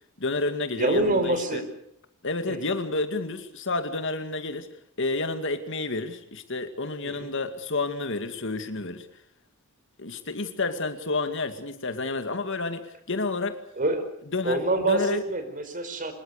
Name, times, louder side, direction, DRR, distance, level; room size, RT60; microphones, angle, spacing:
voice 1, 0.2-1.6 2.2-4.7 5.0-9.1 10.0-13.6 14.3-14.6 14.9-15.2, left 3 dB, 60° left, 2.3 m, -30 dB
voice 2, 0.7-1.6 2.5-2.7 7.0-7.3 13.8-16.1, right 2 dB, 40° right, 4.5 m, -26 dB
25.0 x 21.5 x 6.7 m
head